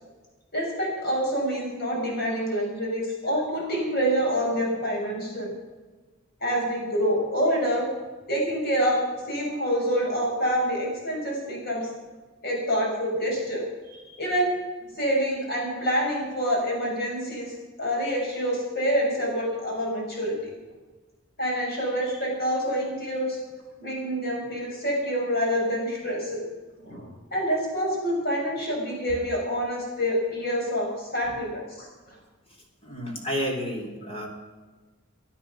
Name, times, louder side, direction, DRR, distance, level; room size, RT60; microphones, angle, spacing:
voice 1, 0.5-5.5 6.4-7.9 8.3-11.8 12.4-14.5 15.0-20.4 21.4-23.4 23.8-26.4 26.8-31.9, equal, 50° left, -2 dB, 6.9 m, -27 dB
voice 2, 32.8-34.3, equal, 30° left, 1 dB, 3.6 m, -31 dB
19.0 x 11.5 x 6.1 m, 1.3 s
head